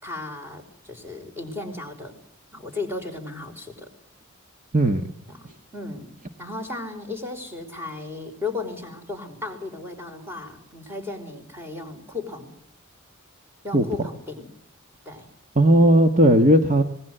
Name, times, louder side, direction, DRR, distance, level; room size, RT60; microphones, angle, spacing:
voice 1, 0.0-2.1 2.5-3.9 5.3-6.1 6.4-12.5 13.6-14.5 15.1-15.3, left 3 dB, 10° right, 5 dB, 5.1 m, -35 dB
voice 2, 4.7-5.1 13.7-13.8 15.5-16.8, right 1 dB, 35° right, 5 dB, 1.6 m, -16 dB
25.5 x 20.5 x 8.0 m, 0.69 s
head